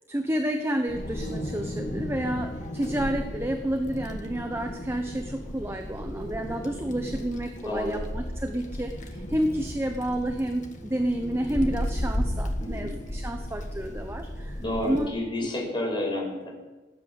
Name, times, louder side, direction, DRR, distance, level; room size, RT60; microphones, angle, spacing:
voice 1, 0.1-15.1 15.4-15.5, right 1 dB, 15° right, 4 dB, 1.0 m, -30 dB
Wind, 0.9-15.1, equal, 45° left, 1.7 m, -34 dB
voice 2, 7.6-8.0 12.6-12.9 14.6-16.5, left 1 dB, 25° left, -2 dB, 5.8 m, -30 dB
19.0 x 8.4 x 8.3 m, 1.2 s
head